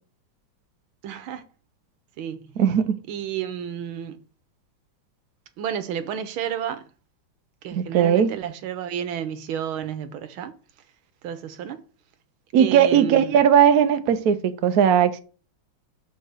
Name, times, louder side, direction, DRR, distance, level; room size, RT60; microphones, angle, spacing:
voice 1, 1.0-1.4 2.2-2.5 3.1-4.2 5.6-6.9 7.6-10.5 11.2-11.8 12.6-13.4, right 9 dB, 85° right, 1.7 m, -31 dB
voice 2, 2.6-3.0 7.8-8.3 12.5-15.2, right 8 dB, 60° right, 1.1 m, -18 dB
6.8 x 4.7 x 6.6 m
omnidirectional pair, 2.2 m